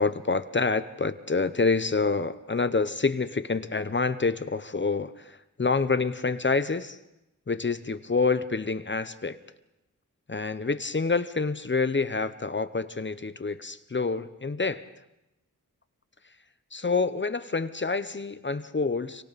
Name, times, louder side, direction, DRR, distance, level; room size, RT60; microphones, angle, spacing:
voice 1, 0.0-7.0 7.5-9.4 10.3-14.8 16.7-19.2, left 4 dB, 35° left, 11 dB, 0.9 m, -27 dB
30.0 x 24.0 x 4.2 m, 0.92 s
wide cardioid pair, 80°, 33 cm